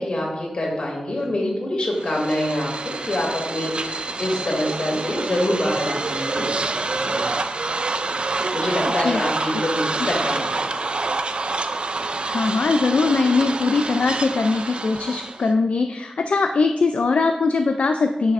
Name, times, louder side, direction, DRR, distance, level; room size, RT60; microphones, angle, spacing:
voice 1, 0.0-6.5 7.1-7.4 8.5-10.6, left 1 dB, 60° left, -2 dB, 2.5 m, -25 dB
sound 1, 1.9-15.5, right 3 dB, 55° right, 0.4 m, -27 dB
voice 2, 12.3-18.3, left 4 dB, 80° left, 5 dB, 0.4 m, -21 dB
9.6 x 6.5 x 2.5 m, 0.99 s
wide cardioid pair, 95°, 2 cm